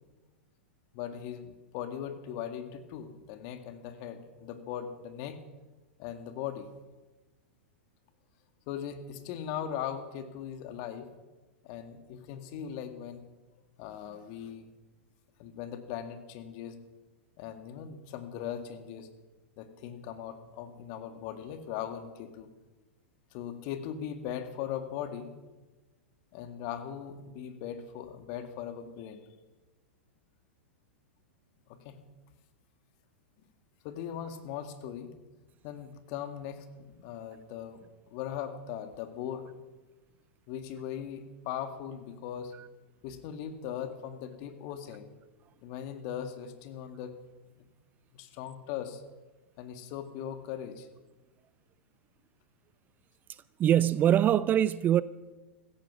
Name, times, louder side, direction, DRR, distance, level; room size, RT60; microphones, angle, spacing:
voice 1, 0.9-5.4 6.0-6.7 8.7-11.1 11.6-13.3 13.8-14.7 15.4-16.8 17.4-19.1 19.6-22.5 23.3-25.3 26.3-29.2 31.7-32.0 33.8-35.1 35.6-39.5 40.5-42.5 43.0-45.1 45.6-47.2 48.1-49.0 49.6-50.9, left 9 dB, 45° left, 2.0 m, -39 dB
voice 2, 53.3-55.0, right 10 dB, 25° right, 0.4 m, -24 dB
16.0 x 15.0 x 6.1 m
figure-of-eight pair, 100°, 7 cm